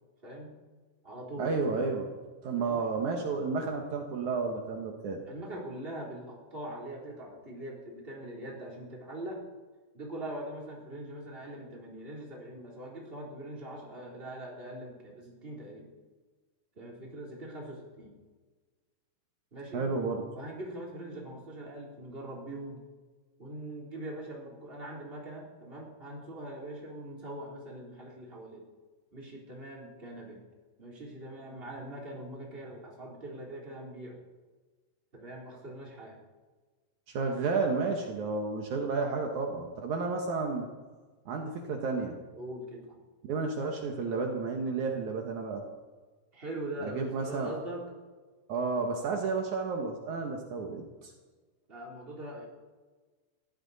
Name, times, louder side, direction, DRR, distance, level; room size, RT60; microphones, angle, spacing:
voice 1, 0.2-0.6 1.0-1.5 2.6-2.9 5.2-9.4 9.9-15.9 16.7-18.1 19.5-19.8 20.3-22.8 23.4-28.7 29.1-30.4 30.8-34.2 35.1-36.2 42.3-43.0 46.3-47.9 51.7-52.5, right 1 dB, 15° right, -2 dB, 2.7 m, -42 dB
voice 2, 1.4-2.1 2.4-5.2 19.7-20.2 37.1-40.7 41.2-42.2 43.3-45.6 46.8-47.5 48.5-51.1, right 4 dB, 90° right, 2 dB, 1.6 m, -31 dB
20.5 x 15.5 x 4.2 m, 1.3 s
omnidirectional pair, 5.7 m